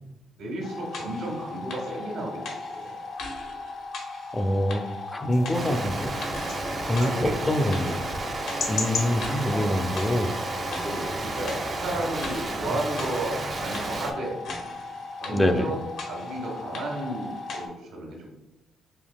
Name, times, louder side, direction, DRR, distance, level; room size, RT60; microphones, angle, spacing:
voice 1, 0.4-3.0 6.9-7.7 10.7-14.4 15.2-18.3, right 1 dB, 90° right, -1 dB, 1.2 m, -33 dB
sound 1, 0.6-17.7, left 3 dB, 80° left, 0.8 m, -37 dB
voice 2, 4.3-6.1 6.8-8.0 8.7-10.3 15.3-15.7, left 1 dB, 20° left, 6 dB, 0.4 m, -25 dB
sound 2, 5.3-11.1, left 3 dB, 60° left, 1.0 m, -37 dB
sound 3, 5.5-14.1, right 2 dB, 40° right, 0.6 m, -32 dB
5.2 x 2.7 x 2.2 m, 0.96 s
cardioid pair, 90°, 0 cm